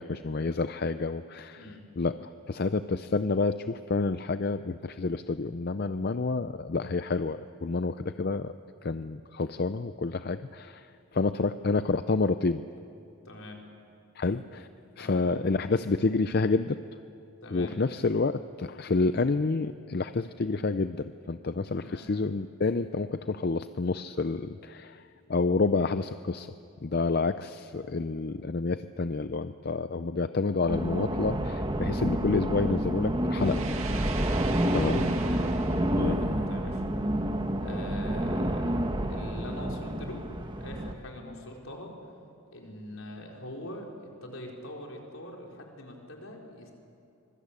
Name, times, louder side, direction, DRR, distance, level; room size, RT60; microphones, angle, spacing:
voice 1, 0.0-1.6 2.0-8.5 8.8-10.9 11.1-12.6 14.2-14.7 15.0-16.8 17.5-25.0 25.3-26.5 26.8-34.0 34.7-35.0 35.9-36.2, left 3 dB, 45° left, 11 dB, 0.5 m, -29 dB
voice 2, 13.2-13.6 15.0-15.2 17.4-17.7 21.8-22.1 34.5-35.0 36.2-36.8 37.6-38.7 39.0-40.2 40.6-42.0 42.5-43.9 44.2-46.7, left 1 dB, 65° left, 0 dB, 4.3 m, -43 dB
sound 1, 30.7-40.9, right 1 dB, 20° right, 1.2 m, -29 dB
sound 2, 33.3-36.1, right 6 dB, 70° right, 2.1 m, -41 dB
25.5 x 21.5 x 8.4 m, 2.8 s
head